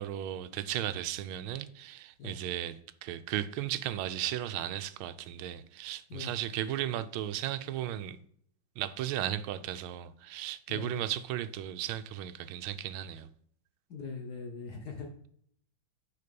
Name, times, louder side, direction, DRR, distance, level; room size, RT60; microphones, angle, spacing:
voice 1, 0.0-8.2 8.8-13.3, right 12 dB, 90° right, 1.4 m, -35 dB
voice 2, 10.7-11.0 13.9-15.1, left 4 dB, 60° left, 1.3 m, -41 dB
6.7 x 5.2 x 5.2 m
omnidirectional pair, 2.2 m